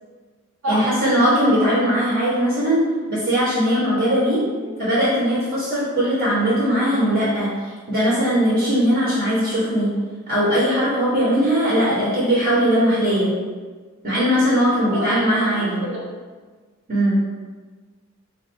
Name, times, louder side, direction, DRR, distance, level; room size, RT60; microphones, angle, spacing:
voice 1, 0.7-2.8 3.1-4.4 4.8-7.5 7.9-9.9 10.3-13.3 14.0-15.8 16.9-17.2, equal, 50° right, -8 dB, 1.1 m, -19 dB
voice 2, 4.5-4.9 11.8-12.1 14.8-16.1, equal, 80° right, -6 dB, 0.9 m, -30 dB
3.3 x 2.5 x 4.2 m, 1.4 s
head